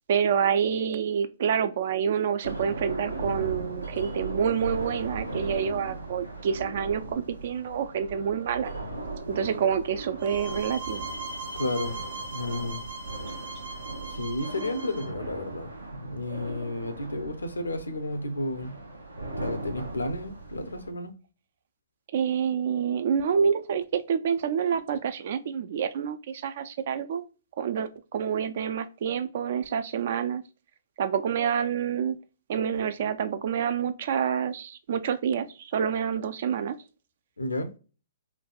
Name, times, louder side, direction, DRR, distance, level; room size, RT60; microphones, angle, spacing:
voice 1, 0.1-8.7 9.3-11.0 22.1-27.2 27.6-30.4 31.0-32.2 32.5-36.8, right 7 dB, 55° right, 0.3 m, -27 dB
sound 1, 2.4-20.9, right 2 dB, 90° right, 0.7 m, -38 dB
sound 2, 10.2-15.1, right 3 dB, 70° right, 1.1 m, -39 dB
voice 2, 11.5-11.9 12.3-12.8 14.1-18.7 19.4-21.1 37.4-37.7, left 1 dB, 85° left, 0.5 m, -32 dB
3.2 x 2.2 x 2.4 m
figure-of-eight pair, 120°, 0 cm